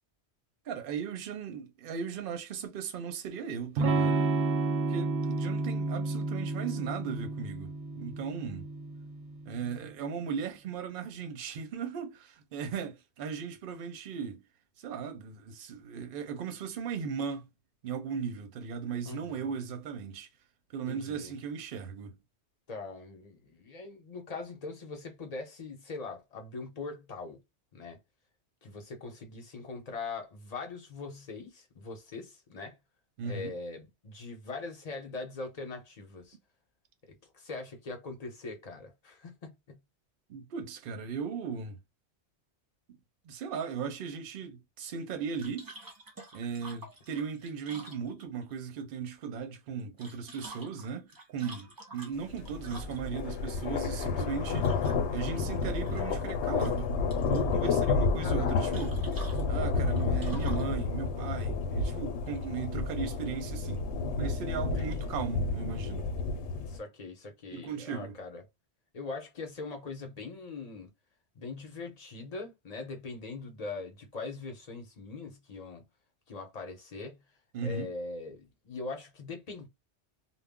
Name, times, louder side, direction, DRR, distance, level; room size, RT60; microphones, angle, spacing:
voice 1, 0.7-4.3 4.9-8.7 9.4-14.4 14.8-17.5 17.8-20.3 20.7-22.2 33.2-33.6 40.3-41.8 42.9-43.0 43.2-45.7 46.3-56.9 57.3-59.0 59.5-63.9 64.2-66.1 67.5-68.2 77.5-77.9, right 6 dB, 60° right, 0.7 m, -37 dB
Electric guitar / Strum, 3.8-9.5, right 3 dB, 90° right, 0.9 m, -31 dB
voice 2, 19.0-19.4 20.9-21.3 22.7-27.4 27.7-28.0 28.6-32.8 33.3-36.4 37.1-39.8 58.2-58.7 64.7-65.1 66.6-68.4 68.9-70.9 71.4-75.8 76.3-77.2 77.6-79.7, left 3 dB, 40° left, 0.8 m, -41 dB
sound 1, 45.4-48.5 49.8-53.2 54.6-55.3 55.6-56.3 56.6-57.5 58.7-60.7, right 2 dB, 25° right, 0.5 m, -48 dB
sound 2, 52.3-66.8, left 4 dB, 80° left, 0.9 m, -30 dB
2.3 x 2.0 x 3.5 m
omnidirectional pair, 1.1 m